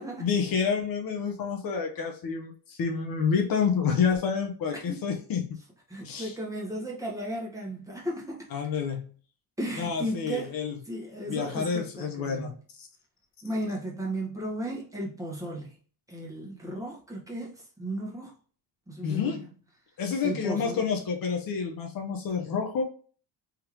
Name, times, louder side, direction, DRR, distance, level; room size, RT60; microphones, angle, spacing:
voice 1, 0.2-5.5 6.0-6.3 8.5-9.1 9.8-10.8 11.2-12.5 12.8-12.9 19.0-19.4 20.0-22.8, left 6 dB, 60° left, 1.0 m, -28 dB
voice 2, 5.9-8.5 9.6-10.6 10.9-12.5 13.4-15.7 16.1-18.3 18.9-19.4 20.2-20.8, right 1 dB, 10° right, 1.4 m, -35 dB
3.6 x 3.4 x 3.0 m
cardioid pair, 135°, 39 cm